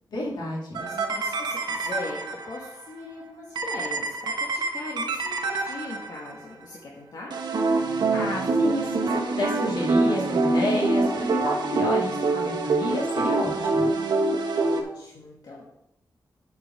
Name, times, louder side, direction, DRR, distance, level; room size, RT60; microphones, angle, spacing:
voice 1, 0.1-0.8 8.1-13.9, left 1 dB, 80° left, -3 dB, 2.7 m, -30 dB
sound 1, 0.7-2.7 3.5-6.4 7.3-14.8, right 3 dB, 80° right, 1.2 m, -25 dB
voice 2, 0.8-7.4 14.6-15.7, left 2 dB, 65° left, -3 dB, 1.5 m, -40 dB
8.0 x 5.2 x 6.1 m, 0.80 s
wide cardioid pair, 155°, 7 cm